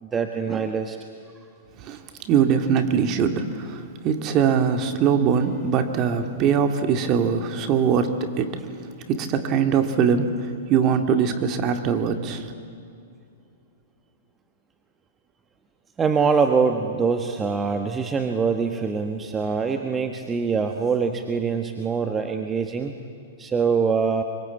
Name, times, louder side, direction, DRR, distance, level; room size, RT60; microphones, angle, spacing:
voice 1, 0.0-1.0 16.0-22.9 23.4-24.2, right 5 dB, 15° right, 6 dB, 1.4 m, -24 dB
voice 2, 1.8-8.7 9.1-12.5, right 7 dB, 35° right, 7 dB, 2.3 m, -22 dB
25.0 x 24.0 x 8.5 m, 2.5 s
hypercardioid pair, 125°, 0 cm